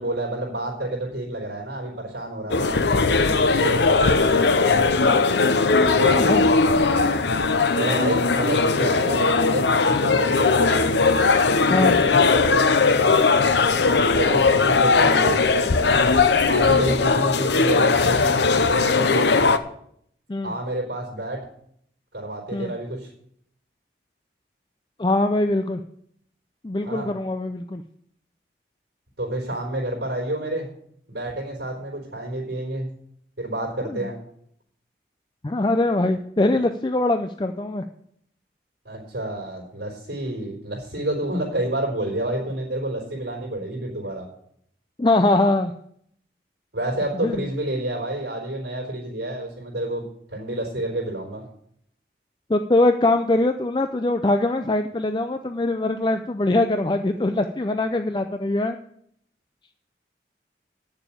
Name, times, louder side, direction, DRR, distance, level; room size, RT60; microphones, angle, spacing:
voice 1, 0.0-5.2 5.8-7.3 7.8-10.7 11.7-13.9 14.2-16.0 16.4-19.3 20.4-21.4 22.1-23.1 26.9-27.1 29.2-30.7 31.1-32.9 33.4-34.2 38.8-44.3 46.7-51.5, right 1 dB, 80° right, -2 dB, 3.9 m, -29 dB
sound 1, 2.5-19.6, left 4 dB, 80° left, 0.7 m, -19 dB
voice 2, 25.0-25.8 26.6-27.8 33.8-34.1 35.4-37.8 45.0-45.7 47.1-47.5 52.5-58.8, left 2 dB, 25° left, 7 dB, 0.4 m, -22 dB
9.0 x 7.0 x 8.5 m, 0.69 s
head